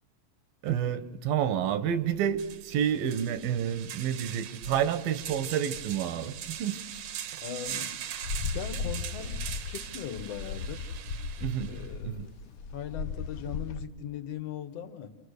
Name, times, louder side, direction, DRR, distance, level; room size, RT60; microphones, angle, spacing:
voice 1, 0.6-6.8 11.4-11.8 12.0-12.3, right 9 dB, 80° right, 2.9 m, -29 dB
sound 1, 1.9-2.0 2.3-11.9, right 9 dB, 65° right, 2.0 m, -41 dB
voice 2, 7.4-8.0 8.5-10.9 11.7-12.3 12.7-15.1, left 9 dB, 55° left, 2.1 m, -39 dB
sound 2, 8.2-13.8, left 4 dB, 90° left, 1.2 m, -36 dB
29.5 x 28.5 x 6.6 m
omnidirectional pair, 4.2 m